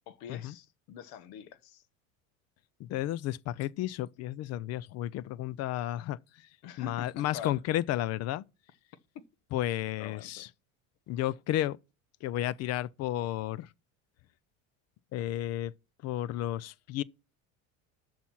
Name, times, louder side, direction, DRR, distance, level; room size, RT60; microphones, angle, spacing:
voice 1, 0.1-1.8 6.6-7.6 10.0-10.5, left 9 dB, 65° left, 1.1 m, -45 dB
voice 2, 2.8-6.2 6.8-8.4 9.5-10.5 11.1-11.8 12.2-13.7 15.1-15.7 16.0-17.0, left 13 dB, 40° left, 0.4 m, -32 dB
6.9 x 5.8 x 6.0 m
supercardioid pair, 115°, 39 cm